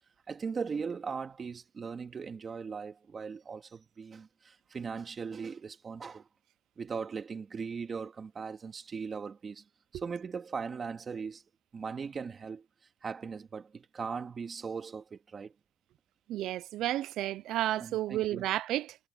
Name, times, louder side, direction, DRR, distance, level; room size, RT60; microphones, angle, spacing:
voice 1, 0.3-6.3 6.8-9.6 9.9-11.4 11.7-12.7 13.0-15.5 17.8-18.5, right 5 dB, 40° right, 2.4 m, -39 dB
voice 2, 16.3-19.0, right 14 dB, 85° right, 0.6 m, -32 dB
cardioid pair, 90°, 0 cm